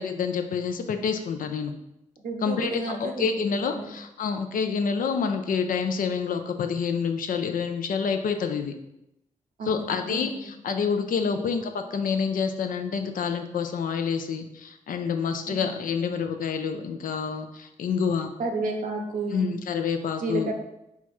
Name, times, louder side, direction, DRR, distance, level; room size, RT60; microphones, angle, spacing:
voice 1, 0.0-1.7 2.4-8.8 9.7-18.3 19.3-20.5, left 6 dB, 80° left, 7 dB, 0.5 m, -28 dB
voice 2, 2.2-3.4 3.7-3.9 9.6-10.5 11.2-11.4 15.5-15.6 18.4-19.5 20.2-20.5, right 3 dB, 80° right, 3 dB, 0.7 m, -31 dB
4.6 x 2.4 x 4.2 m, 0.86 s
cardioid pair, 65°, 14 cm